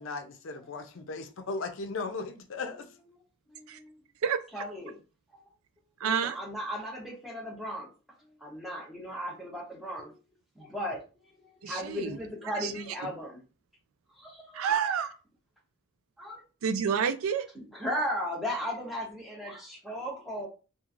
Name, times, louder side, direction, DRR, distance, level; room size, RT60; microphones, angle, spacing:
voice 1, 0.0-2.9, left 3 dB, 65° left, 0.5 m, -37 dB
voice 2, 3.5-4.0 4.5-5.0 6.0-7.9 8.4-10.2 10.6-11.0 11.4-13.4 14.2-14.9 16.2-16.4 17.6-20.5, equal, ahead, 0.8 m, -36 dB
voice 3, 4.2-4.6 6.0-6.4 11.6-12.2 12.6-12.7 14.5-15.1 16.6-17.5, right 7 dB, 85° right, 0.4 m, -29 dB
2.9 x 2.4 x 2.4 m
head